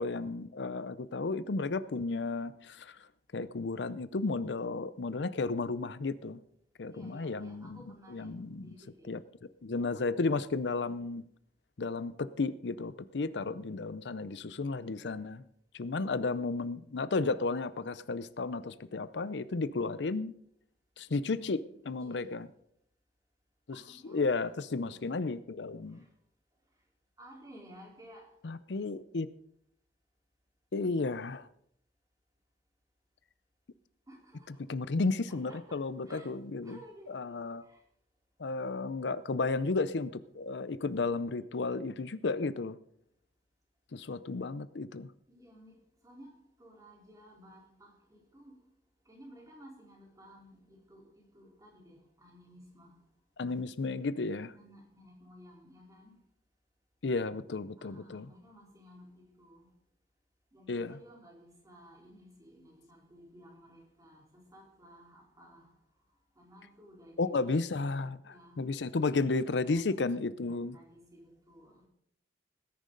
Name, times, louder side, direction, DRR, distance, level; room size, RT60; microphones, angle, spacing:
voice 1, 0.0-3.1 3.3-6.4 6.8-7.8 8.1-8.7 9.1-9.2 9.6-11.2 11.8-15.5 15.7-20.3 21.0-21.6 21.8-22.5 23.7-26.0 28.4-29.3 30.7-31.5 34.7-36.8 37.1-37.6 38.4-42.8 43.9-45.1 53.4-54.5 57.0-58.3 60.7-61.0 67.2-70.8, left 3 dB, 80° left, 15 dB, 0.6 m, -33 dB
voice 2, 6.9-8.3 8.6-9.1 21.1-22.4 23.7-25.2 25.9-26.1 27.2-28.3 34.1-34.6 35.3-36.3 36.6-37.4 37.6-37.8 40.5-40.6 45.3-45.8 46.0-48.6 49.1-52.9 54.5-56.1 57.8-59.7 60.5-65.7 66.4-67.5 68.2-69.3 69.6-70.0 70.5-71.8, equal, 20° right, -1 dB, 4.0 m, -55 dB
19.0 x 10.5 x 3.9 m, 0.70 s
head